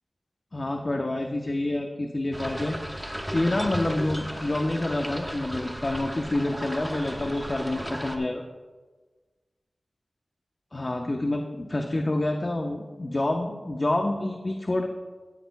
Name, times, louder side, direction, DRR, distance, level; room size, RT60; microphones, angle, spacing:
voice 1, 0.5-2.8 3.3-8.4 10.7-14.9, left 1 dB, 45° left, 3 dB, 0.9 m, -28 dB
sound 1, 2.3-8.2, equal, 10° right, 1.3 m, -35 dB
15.0 x 13.5 x 2.3 m, 1.3 s
wide cardioid pair, 60°, 0 cm